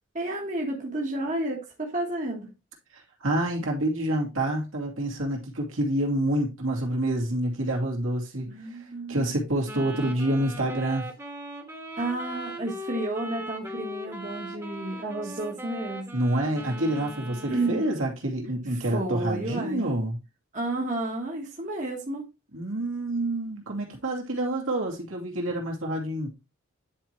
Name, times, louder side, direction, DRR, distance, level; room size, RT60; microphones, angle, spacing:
voice 1, 0.1-2.5 8.5-9.4 12.0-16.2 17.5-17.8 18.7-19.8 20.5-22.2, right 2 dB, 35° right, 1.3 m, -31 dB
voice 2, 2.9-8.8 9.1-11.1 16.1-20.2 22.5-26.3, right 1 dB, 75° right, 2.4 m, -28 dB
Wind instrument woodwind instrument, 9.6-18.1, right 1 dB, 15° right, 1.3 m, -39 dB
10.0 x 4.5 x 3.1 m
head